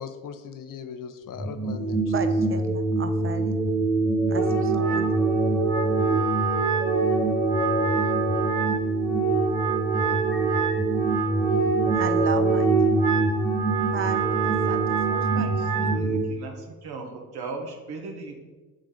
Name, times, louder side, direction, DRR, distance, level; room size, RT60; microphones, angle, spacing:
voice 1, 0.0-2.1, left 7 dB, 55° left, 9 dB, 0.6 m, -39 dB
sound 1, 1.3-16.2, right 2 dB, ahead, 0.9 m, -25 dB
voice 2, 2.0-3.6 4.3-5.1 11.9-12.7 13.9-14.8 15.1-15.5, right 6 dB, 35° right, 8 dB, 0.7 m, -34 dB
Wind instrument woodwind instrument, 4.3-16.0, right 6 dB, 50° right, 1.4 m, -27 dB
voice 3, 15.2-18.4, right 3 dB, 70° right, 3 dB, 1.1 m, -38 dB
7.0 x 3.8 x 3.6 m, 1.3 s
supercardioid pair, 60°, 39 cm